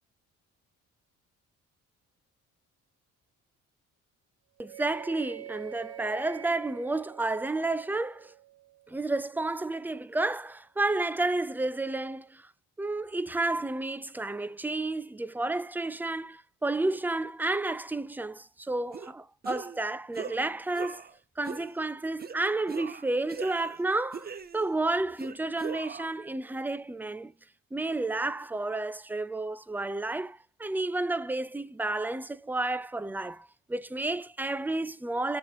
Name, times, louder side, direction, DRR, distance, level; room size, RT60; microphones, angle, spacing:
voice 1, 4.6-8.3 8.9-12.5 12.8-21.0 21.4-27.3 27.7-35.4, right 2 dB, 5° right, 0.5 m, -31 dB
sound 1, 4.6-9.7, right 13 dB, 55° right, 0.5 m, -48 dB
sound 2, 18.9-19.1 19.4-19.8 20.1-20.4 20.7-21.1 21.4-21.7 22.2-22.4 22.7-23.8 24.1-24.7 25.2-26.1, right 5 dB, 30° right, 0.8 m, -40 dB
7.1 x 4.4 x 6.6 m
cardioid pair, 90°, 30 cm